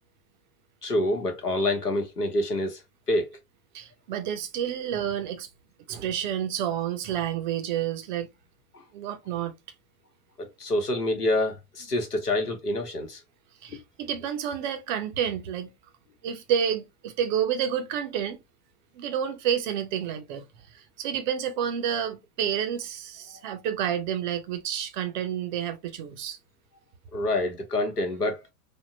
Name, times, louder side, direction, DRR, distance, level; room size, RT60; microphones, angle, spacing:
voice 1, 0.8-2.8 3.1-3.4 5.9-6.0 8.7-8.8 10.4-13.2 27.1-28.4, left 1 dB, 90° left, 1.0 m, -27 dB
voice 2, 3.7-5.5 5.9-8.3 8.9-9.5 13.6-15.7 16.2-18.4 18.9-26.4, right 9 dB, 35° right, 0.4 m, -29 dB
3.5 x 2.0 x 2.5 m
figure-of-eight pair, 100°, 46 cm